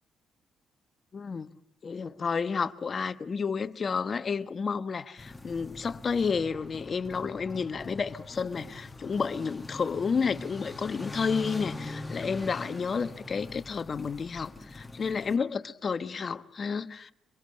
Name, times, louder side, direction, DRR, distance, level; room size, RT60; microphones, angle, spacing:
voice 1, 1.1-1.5 1.8-17.1, left 5 dB, 40° left, 1.2 m, -31 dB
sound 1, 5.2-15.4, left 2 dB, 10° left, 1.9 m, -42 dB
25.0 x 22.5 x 8.6 m
cardioid pair, 90°, 0 cm